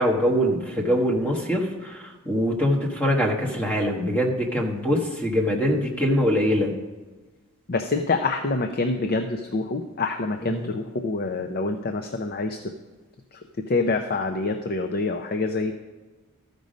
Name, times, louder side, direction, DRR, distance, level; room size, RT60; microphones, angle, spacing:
voice 1, 0.0-6.7 10.4-10.7, equal, 10° left, -1 dB, 1.3 m, -23 dB
voice 2, 7.7-12.6 13.3-13.4 13.7-15.7, left 3 dB, 40° left, 5 dB, 0.5 m, -26 dB
13.5 x 5.3 x 5.1 m, 1.3 s
head